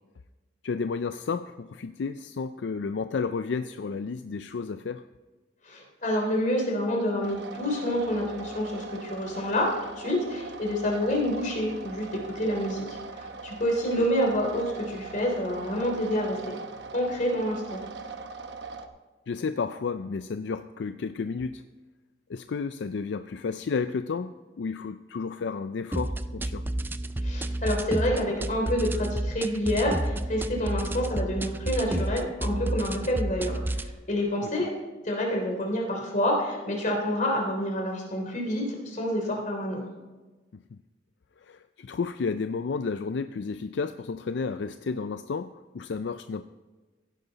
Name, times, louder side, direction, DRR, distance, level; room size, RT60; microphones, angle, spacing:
voice 1, 0.6-5.0 14.0-14.1 19.3-21.6 22.3-26.6 40.5-40.6 41.4-46.4, left 5 dB, 75° left, 10 dB, 0.4 m, -32 dB
voice 2, 5.6-12.8 13.1-16.4 16.9-17.8 27.2-34.7 35.0-39.8, equal, 45° left, 1 dB, 3.2 m, -28 dB
sound 1, 7.2-18.9, right 4 dB, 70° right, 0.9 m, -41 dB
sound 2, 25.9-33.9, right 1 dB, 10° right, 0.3 m, -30 dB
16.0 x 11.0 x 4.1 m, 1.2 s
head